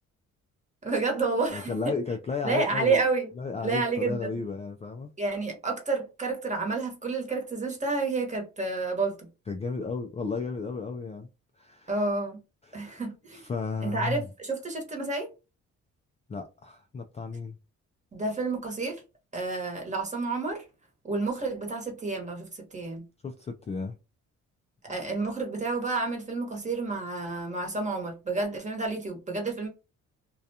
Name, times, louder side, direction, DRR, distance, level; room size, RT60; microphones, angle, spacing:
voice 1, 0.8-1.9 2.4-3.3 3.6-4.3 5.2-9.3 11.9-12.4 12.7-13.4 13.8-15.3 18.1-19.0 19.3-20.6 21.0-23.0 24.8-29.7, right 3 dB, 25° right, 1.1 m, -30 dB
voice 2, 1.5-3.0 3.4-5.1 9.5-11.3 11.6-12.1 12.6-13.0 13.3-14.3 16.3-17.6 23.2-24.0, left 4 dB, 20° left, 0.3 m, -33 dB
2.4 x 2.3 x 2.7 m
cardioid pair, 90°, 30 cm